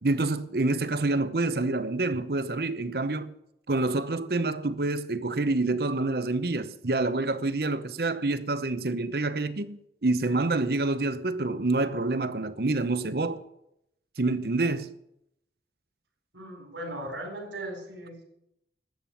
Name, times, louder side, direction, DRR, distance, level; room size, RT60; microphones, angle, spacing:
voice 1, 0.0-3.3 3.7-13.4 14.2-14.9, right 2 dB, 55° right, 0.8 m, -27 dB
voice 2, 16.3-18.2, right 1 dB, 90° right, 4.2 m, -38 dB
12.5 x 8.9 x 9.0 m
head